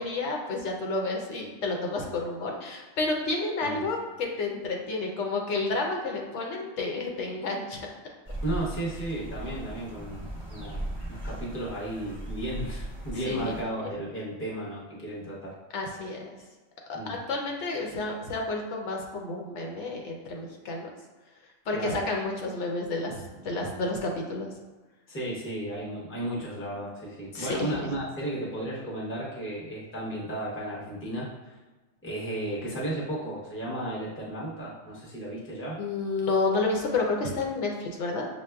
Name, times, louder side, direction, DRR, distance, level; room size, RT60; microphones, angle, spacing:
voice 1, 0.0-7.8 13.1-13.6 15.7-16.3 16.9-20.9 21.7-24.5 27.3-27.7 35.8-38.3, left 3 dB, 75° left, 0 dB, 1.0 m, -30 dB
sound 1, 8.2-13.6, right 1 dB, 30° right, 0.7 m, -38 dB
voice 2, 8.4-15.6 16.9-17.2 21.7-22.0 25.1-31.6 32.0-35.8, right 1 dB, 15° left, -5 dB, 0.6 m, -34 dB
6.1 x 2.2 x 2.3 m, 1.2 s
omnidirectional pair, 1.2 m